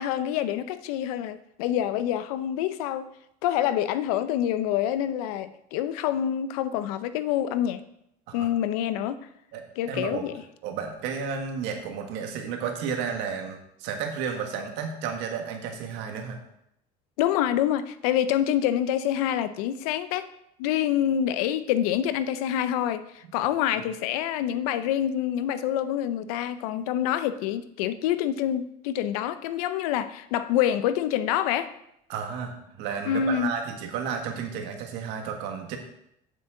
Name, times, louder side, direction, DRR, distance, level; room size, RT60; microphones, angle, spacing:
voice 1, 0.0-3.1 3.4-7.8 8.3-9.2 9.8-10.3 17.2-20.3 20.6-31.7 33.1-33.5, left 10 dB, 90° left, 13 dB, 0.6 m, -26 dB
voice 2, 9.5-10.2 10.6-16.4 32.1-35.8, right 6 dB, 70° right, 3 dB, 1.7 m, -32 dB
8.7 x 7.6 x 3.8 m, 0.78 s
supercardioid pair, 115°, 18 cm